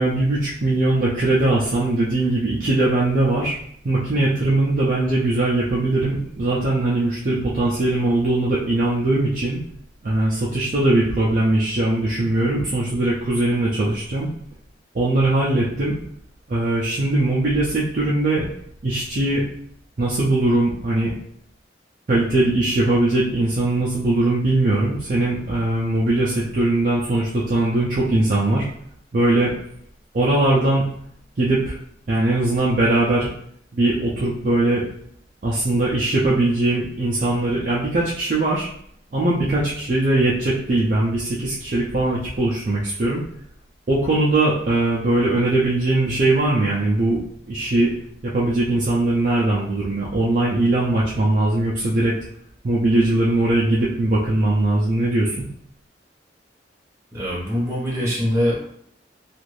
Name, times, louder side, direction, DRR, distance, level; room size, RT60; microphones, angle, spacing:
voice 1, 0.0-3.6 3.8-9.6 10.0-14.3 14.9-16.0 16.5-18.5 18.8-19.5 20.0-21.1 22.1-28.7 29.1-29.5 30.1-30.9 31.4-31.8 32.1-33.3 33.7-34.8 35.4-38.7 39.1-43.2 43.9-47.2 47.5-47.9 48.2-52.1 52.6-55.5, right 2 dB, 45° right, -5 dB, 0.4 m, -20 dB
voice 2, 57.1-58.6, equal, 15° right, -6 dB, 1.0 m, -23 dB
2.5 x 2.4 x 3.1 m, 0.68 s
head